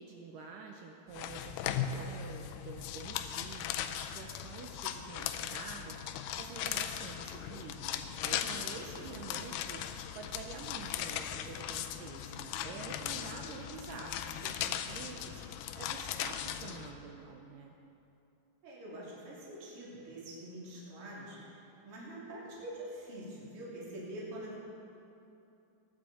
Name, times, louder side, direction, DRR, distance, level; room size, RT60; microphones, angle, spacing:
voice 1, 0.0-17.7, right 5 dB, 75° right, 1 dB, 2.1 m, -48 dB
sound 1, 1.1-16.9, left 10 dB, 85° left, 2.6 m, -38 dB
voice 2, 8.2-9.2 18.6-24.6, right 1 dB, 35° right, -7 dB, 3.5 m, -46 dB
20.0 x 9.9 x 4.2 m, 2.8 s
omnidirectional pair, 4.4 m